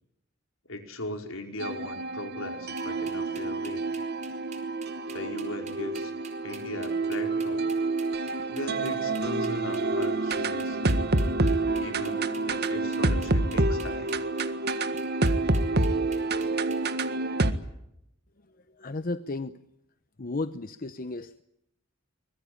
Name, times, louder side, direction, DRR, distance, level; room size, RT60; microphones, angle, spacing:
voice 1, 0.6-3.9 5.1-6.1 6.4-7.7 8.5-11.0 11.8-14.1, left 1 dB, 75° left, 5 dB, 5.0 m, -38 dB
sound 1, 1.6-17.5, right 2 dB, 55° right, 1.7 m, -28 dB
sound 2, 2.8-17.1, right 6 dB, 35° right, 4.6 m, -48 dB
voice 2, 18.8-19.6 20.2-21.4, left 2 dB, 45° left, 12 dB, 0.9 m, -33 dB
24.5 x 21.5 x 8.6 m, 0.81 s
head